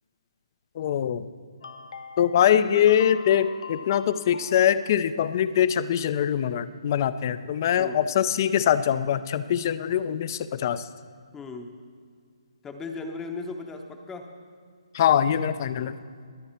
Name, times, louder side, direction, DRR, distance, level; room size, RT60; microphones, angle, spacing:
voice 1, 0.8-1.2 2.2-10.8 14.9-16.0, left 9 dB, 35° left, 14 dB, 0.5 m, -23 dB
sound 1, 1.6-4.8, left 5 dB, 70° left, 0.8 m, -42 dB
voice 2, 7.8-8.1 11.3-11.7 12.6-14.3, left 3 dB, 10° left, 4 dB, 0.8 m, -37 dB
21.5 x 8.9 x 4.4 m, 2.1 s
hypercardioid pair, 155°, 3 cm